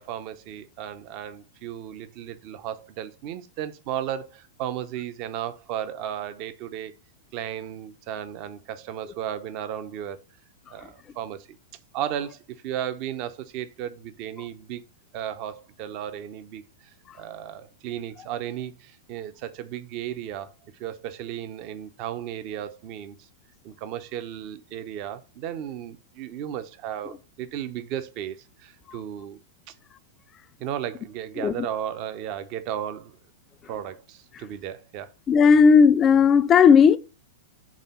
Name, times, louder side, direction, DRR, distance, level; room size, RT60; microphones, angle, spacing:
voice 1, 0.0-6.9 7.3-10.2 10.7-11.5 11.9-14.8 15.1-20.5 20.8-23.3 23.6-29.4 29.7-29.8 30.6-33.2 33.7-35.1, right 10 dB, 40° right, 0.7 m, -34 dB
voice 2, 35.3-37.0, left 6 dB, 25° left, 0.4 m, -15 dB
6.3 x 3.5 x 5.3 m
figure-of-eight pair, 100°, 0 cm